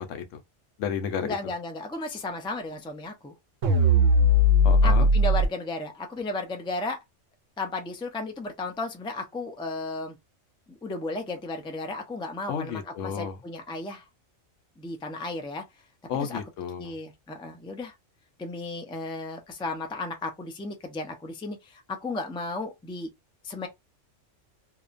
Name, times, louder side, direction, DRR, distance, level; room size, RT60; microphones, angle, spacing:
voice 1, 0.1-0.4 0.8-1.3 4.6-5.1 12.5-13.4 16.1-16.9, left 7 dB, 80° left, 1.0 m, -32 dB
voice 2, 1.2-3.3 4.8-7.0 7.6-10.2 10.7-14.0 14.8-15.6 16.2-16.4 16.8-17.9 18.4-23.1 23.4-23.7, left 2 dB, 10° left, 0.3 m, -34 dB
sound 1, 3.6-5.5, left 1 dB, 90° right, 1.1 m, -19 dB
2.8 x 2.2 x 2.5 m
omnidirectional pair, 1.3 m